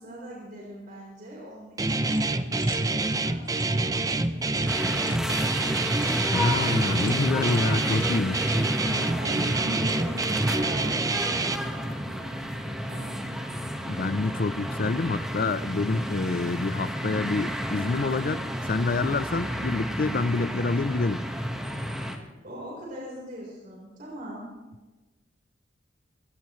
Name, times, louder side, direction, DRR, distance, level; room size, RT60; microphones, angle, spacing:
voice 1, 0.0-5.8 8.6-13.3 22.4-24.4, right 1 dB, 50° right, 4.2 m, -41 dB
Guitar, 1.8-11.6, right 2 dB, 20° right, 0.6 m, -26 dB
sound 1, 2.0-10.2, left 3 dB, 30° left, 2.3 m, -49 dB
sound 2, 4.7-22.2, equal, 5° right, 1.5 m, -32 dB
voice 2, 6.3-8.5 13.8-21.2, left 3 dB, 50° left, 0.5 m, -27 dB
25.0 x 17.0 x 3.2 m
head